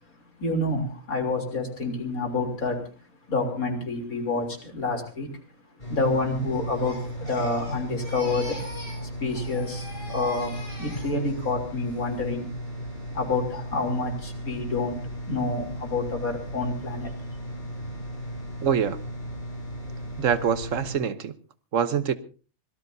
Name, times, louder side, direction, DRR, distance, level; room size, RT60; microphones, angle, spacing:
voice 1, 0.1-2.8 3.3-5.3 5.9-8.6 9.0-12.5 13.1-17.1, left 3 dB, 85° left, 3.8 m, -28 dB
sound 1, 5.8-21.0, equal, 35° left, 6.7 m, -36 dB
Crying sobbing, 6.5-9.0 9.3-11.5 11.9-12.3, equal, 55° left, 6.7 m, -42 dB
voice 2, 18.6-19.0 20.2-21.3 21.7-22.1, right 7 dB, 65° right, 1.3 m, -24 dB
25.0 x 18.0 x 2.7 m
omnidirectional pair, 1.5 m